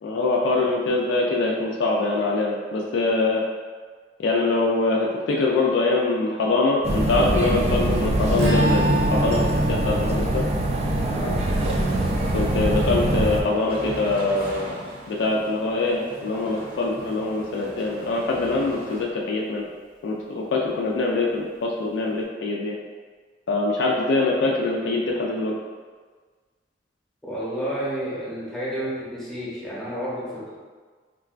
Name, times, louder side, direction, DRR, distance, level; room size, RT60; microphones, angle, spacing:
voice 1, 0.0-3.4 4.2-10.4 12.3-14.7 15.1-19.7 20.0-22.8 23.5-25.5, left 3 dB, 70° left, -2 dB, 0.4 m, -23 dB
sound 1, 6.8-13.4, right 1 dB, 35° right, 0.3 m, -23 dB
Strum, 8.3-12.8, equal, 90° right, 0.7 m, -28 dB
voice 2, 11.0-11.5 27.2-30.6, equal, 5° left, -9 dB, 0.8 m, -30 dB
sound 2, 11.4-19.0, right 1 dB, 55° right, 0.8 m, -39 dB
3.7 x 2.2 x 2.4 m, 1.5 s
head